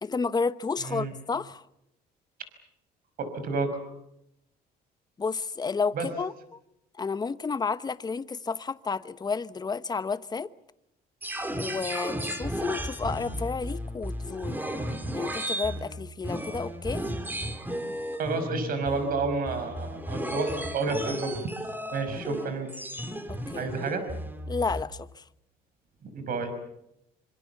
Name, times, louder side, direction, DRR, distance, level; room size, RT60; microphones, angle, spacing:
voice 1, 0.0-1.6 5.2-6.3 7.0-10.5 11.6-14.7 15.1-17.1 23.3-23.7 24.5-25.2, left 4 dB, 25° left, 1.0 m, -31 dB
voice 2, 0.8-1.1 3.2-3.7 5.9-6.1 18.1-21.3 21.9-22.7 23.6-24.0 26.0-26.5, right 3 dB, 60° right, 5.5 m, -30 dB
sound 1, 11.2-24.8, equal, 10° right, 2.9 m, -34 dB
26.0 x 25.5 x 7.1 m
cardioid pair, 110°, 17 cm